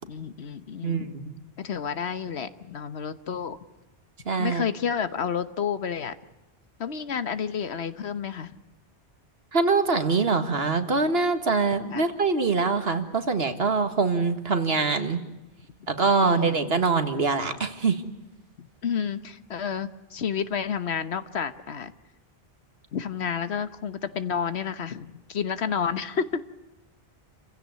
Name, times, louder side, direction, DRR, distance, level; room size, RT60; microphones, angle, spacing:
voice 1, 0.1-1.1 1.6-3.6 4.4-6.1 6.8-8.6 11.9-12.0 16.2-16.9 18.8-21.9 22.9-26.4, left 7 dB, 85° left, 12 dB, 1.4 m, -30 dB
voice 2, 0.8-1.4 4.3-4.6 9.5-15.2 15.9-18.0, right 4 dB, 70° right, 8 dB, 2.0 m, -24 dB
28.5 x 16.0 x 9.5 m, 1.0 s
omnidirectional pair, 1.1 m